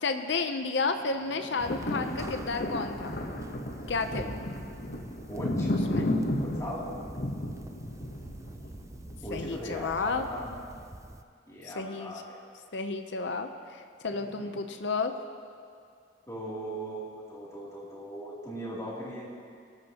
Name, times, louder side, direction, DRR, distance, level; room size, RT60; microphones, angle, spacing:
voice 1, 0.0-3.2 3.9-4.4 5.9-6.1 9.3-10.3 11.8-12.1 12.7-15.1, left 4 dB, 65° left, 7 dB, 0.7 m, -32 dB
sound 1, 1.3-9.5 10.1-10.2, left 1 dB, 50° left, 1.0 m, -33 dB
sound 2, 1.6-11.2, right 2 dB, 15° right, 0.4 m, -45 dB
voice 2, 5.3-5.7 6.4-6.9 9.2-10.5 11.5-12.4 14.0-14.5 16.3-19.2, equal, 15° left, -6 dB, 2.8 m, -39 dB
23.5 x 13.0 x 2.9 m, 2.3 s
head